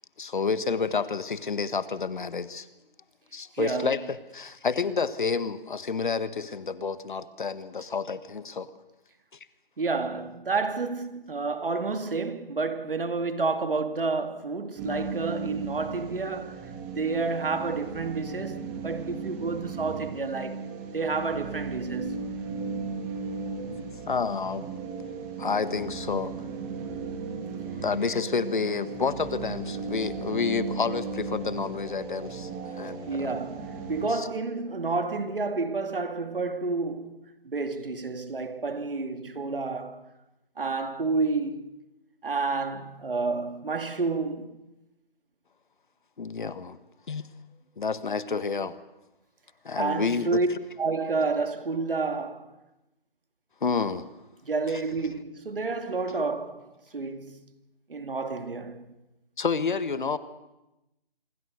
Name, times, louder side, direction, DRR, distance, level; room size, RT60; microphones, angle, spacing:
voice 1, 0.2-2.7 3.3-8.7 24.1-24.7 25.4-26.3 27.8-33.3 34.1-34.3 46.2-46.8 47.1-47.2 47.8-48.8 49.6-50.4 53.6-54.1 54.7-54.8 59.4-60.2, left 5 dB, 55° left, 1.6 m, -29 dB
voice 2, 3.6-3.9 9.8-16.6 17.0-20.6 20.9-22.3 33.1-37.2 37.4-40.1 40.6-41.7 42.2-44.5 49.8-50.5 50.8-52.5 54.4-56.6 56.9-57.4 57.9-58.9, right 4 dB, 65° right, 2.6 m, -30 dB
sound 1, 14.8-34.1, right 4 dB, 10° right, 1.7 m, -36 dB
26.5 x 23.0 x 6.5 m
figure-of-eight pair, 165°, 29 cm